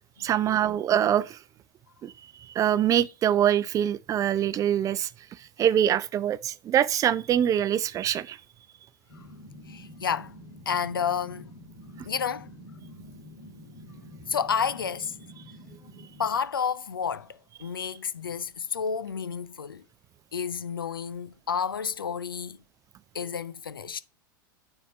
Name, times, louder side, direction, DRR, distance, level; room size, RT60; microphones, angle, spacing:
voice 1, 0.2-1.4 2.0-2.1 2.5-5.1 5.6-8.4, right 10 dB, 30° right, 0.5 m, -24 dB
sound 1, 9.1-16.4, left 1 dB, 65° left, 2.2 m, -47 dB
voice 2, 9.7-10.3 10.7-11.5 12.1-12.5 14.3-15.1 16.2-19.8 20.3-22.6 23.1-24.0, left 7 dB, 85° left, 0.5 m, -30 dB
9.2 x 3.5 x 4.2 m
figure-of-eight pair, 90°, 11 cm